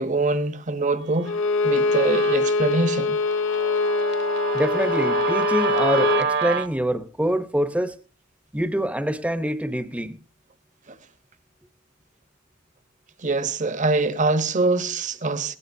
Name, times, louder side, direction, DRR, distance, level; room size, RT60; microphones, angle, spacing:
voice 1, 0.0-1.3 1.6-3.2 10.9-11.0 13.2-15.6, right 3 dB, 40° right, 1.1 m, -24 dB
Guitar, 1.1-6.7, right 5 dB, 60° right, 1.4 m, -28 dB
Bowed string instrument, 1.2-6.3, left 3 dB, 70° left, 0.8 m, -23 dB
voice 2, 4.5-8.0 8.5-10.2, equal, 5° right, 0.9 m, -25 dB
20.0 x 17.5 x 2.7 m
head